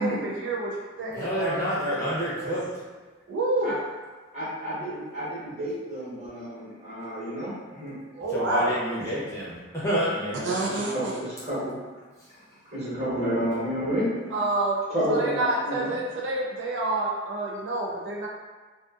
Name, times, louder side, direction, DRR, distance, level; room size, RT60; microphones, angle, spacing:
voice 1, 0.0-1.6 2.3-2.5 3.3-3.8 8.1-8.7 10.4-11.1 14.3-14.8 15.1-18.3, right 2 dB, 70° right, -3 dB, 0.4 m, -28 dB
voice 2, 1.1-2.7 8.3-10.5, equal, 15° left, -9 dB, 0.6 m, -28 dB
voice 3, 4.3-8.0 10.9-11.7 12.7-14.2 14.9-15.9, equal, 35° right, -10 dB, 1.1 m, -30 dB
2.4 x 2.4 x 2.4 m, 1.4 s
head